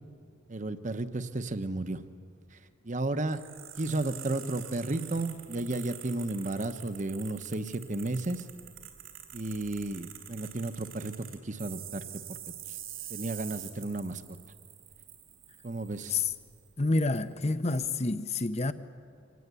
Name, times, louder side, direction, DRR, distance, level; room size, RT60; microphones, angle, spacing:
voice 1, 0.5-2.0 2.5-2.6 2.8-3.4 3.8-8.4 9.3-11.1 11.4-12.4 12.7-12.8 13.1-14.2 15.6-16.2, right 2 dB, 40° right, 1.0 m, -33 dB
sound 1, 3.3-16.7 17.2-17.3 17.7-17.9, right 11 dB, 85° right, 3.4 m, -46 dB
voice 2, 16.8-18.7, left 3 dB, 35° left, 0.8 m, -28 dB
25.5 x 19.0 x 8.3 m
head